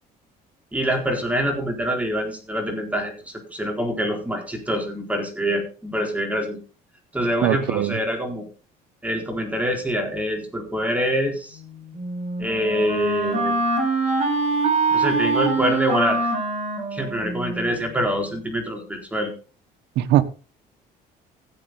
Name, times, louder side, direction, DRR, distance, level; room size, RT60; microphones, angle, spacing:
voice 1, 0.7-6.6 7.1-8.5 9.0-11.6 12.4-13.6 14.9-16.2 16.9-19.3, equal, 10° right, 4.0 m, -25 dB
voice 2, 7.4-8.0 20.0-20.2, right 13 dB, 80° right, 1.2 m, -20 dB
Wind instrument woodwind instrument, 11.9-17.8, right 3 dB, 40° right, 4.3 m, -24 dB
16.5 x 7.7 x 3.9 m
cardioid pair, 110°, 17 cm